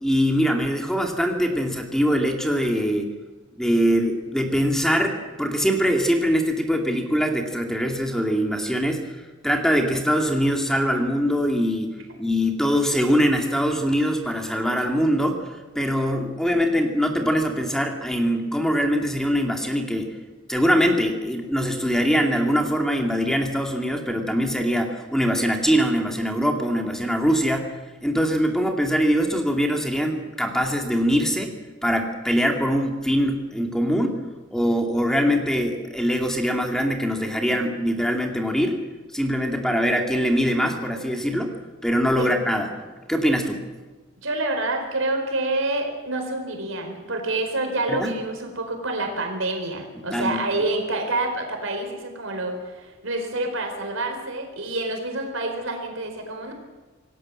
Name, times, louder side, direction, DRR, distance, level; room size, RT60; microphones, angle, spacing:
voice 1, 0.0-3.1 3.6-20.2 20.5-27.7 28.0-31.5 31.8-34.1 34.5-38.8 39.1-41.5 41.8-42.8 43.1-43.6 47.9-48.1 50.1-50.4, equal, ahead, 2 dB, 2.3 m, -23 dB
voice 2, 44.2-56.5, right 2 dB, 75° right, 3 dB, 4.4 m, -27 dB
27.5 x 18.0 x 7.6 m, 1.3 s
head